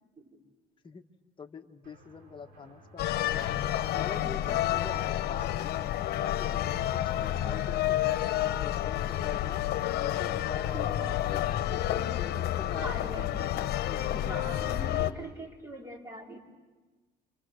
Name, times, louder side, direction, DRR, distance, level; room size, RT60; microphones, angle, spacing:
voice 1, 1.4-3.0 3.9-5.7 6.1-9.6 10.0-11.4 11.7-13.4 13.8-14.4 14.7-14.8, left 5 dB, 30° left, 5 dB, 1.5 m, -44 dB
sound 1, 1.8-8.6, right 2 dB, 65° right, 7.5 m, -59 dB
sound 2, 3.0-15.1, left 12 dB, 70° left, 1.1 m, -30 dB
voice 2, 4.2-4.6 10.7-11.2 12.8-13.6 14.3-16.4, right 1 dB, 15° right, 1 dB, 3.9 m, -42 dB
29.0 x 26.5 x 6.5 m, 1.3 s
cardioid pair, 110°, 17 cm